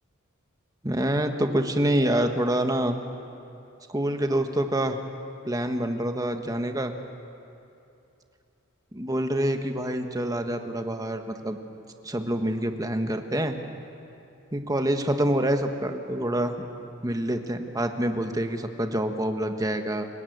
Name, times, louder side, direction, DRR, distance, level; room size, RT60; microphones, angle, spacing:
voice 1, 0.8-3.0 3.9-5.0 5.4-6.9 8.9-11.6 12.0-13.6 14.5-16.7 17.0-20.1, right 1 dB, 20° right, 6 dB, 1.3 m, -26 dB
30.0 x 17.5 x 8.1 m, 2.7 s
head